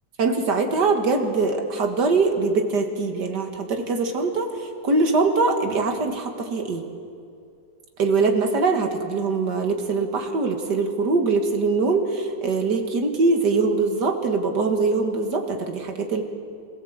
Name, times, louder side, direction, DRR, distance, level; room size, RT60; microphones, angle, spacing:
voice 1, 0.2-4.5 4.8-6.8 8.0-16.2, right 3 dB, 75° right, 4 dB, 2.3 m, -22 dB
22.0 x 16.0 x 7.9 m, 2.4 s
omnidirectional pair, 1.8 m